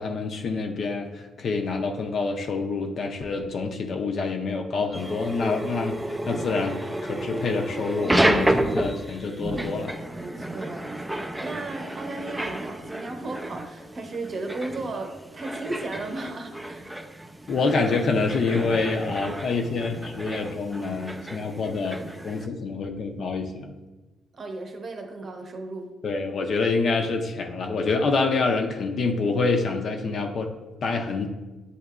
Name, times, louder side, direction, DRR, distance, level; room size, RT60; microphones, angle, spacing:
voice 1, 0.0-6.0 6.3-6.8 7.0-9.9 17.5-22.0 22.2-23.7 26.0-30.5 30.8-31.3, left 4 dB, 55° left, 3 dB, 0.5 m, -26 dB
sound 1, 4.9-22.5, right 1 dB, 10° right, 0.3 m, -30 dB
voice 2, 10.2-16.8 24.3-25.9, right 2 dB, 45° right, 4 dB, 0.7 m, -35 dB
7.8 x 2.8 x 2.4 m, 1.1 s
cardioid pair, 90°, 0 cm